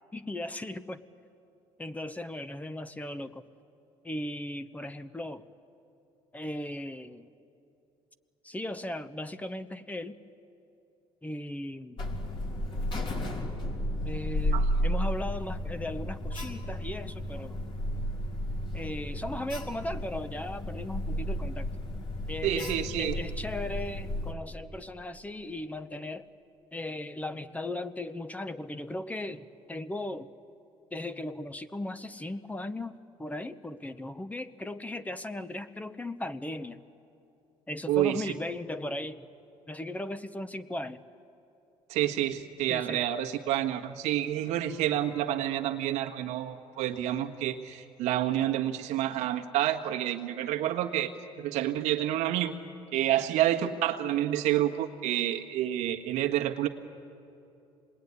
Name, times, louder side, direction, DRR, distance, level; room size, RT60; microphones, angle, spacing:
voice 1, 0.1-1.0 1.8-3.4 4.0-5.5 6.3-7.3 8.4-10.2 11.2-12.0 14.0-17.6 18.7-21.7 22.3-26.2 26.7-30.3 30.9-36.8 37.7-39.3 39.7-41.0 42.7-43.0, left 1 dB, 15° left, 11 dB, 1.0 m, -37 dB
Alarm, 12.0-24.3, equal, 45° left, 3.6 m, -33 dB
voice 2, 22.4-23.2 37.9-38.2 41.9-51.1 51.4-52.5 52.9-56.7, right 12 dB, 85° right, 4 dB, 1.5 m, -28 dB
25.5 x 20.5 x 9.8 m, 2.8 s
supercardioid pair, 85°, 11 cm